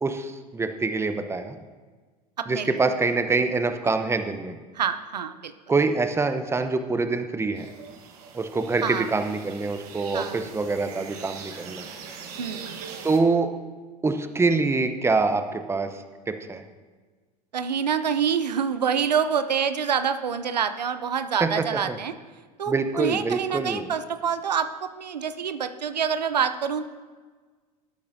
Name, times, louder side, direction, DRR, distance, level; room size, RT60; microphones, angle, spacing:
voice 1, 0.0-1.6 2.5-4.6 5.7-7.7 8.3-11.9 13.0-13.5 14.0-16.6 21.4-21.5 21.9-22.0 22.7-23.9, right 3 dB, 10° right, 8 dB, 0.8 m, -25 dB
voice 2, 2.4-2.7 4.8-5.5 8.8-9.1 10.1-10.5 12.4-12.8 17.5-22.1 22.6-26.9, right 7 dB, 90° right, 11 dB, 0.5 m, -26 dB
sound 1, 7.6-13.2, right 6 dB, 65° right, 1.4 m, -41 dB
18.0 x 8.4 x 2.7 m, 1.4 s
hypercardioid pair, 85°, 21 cm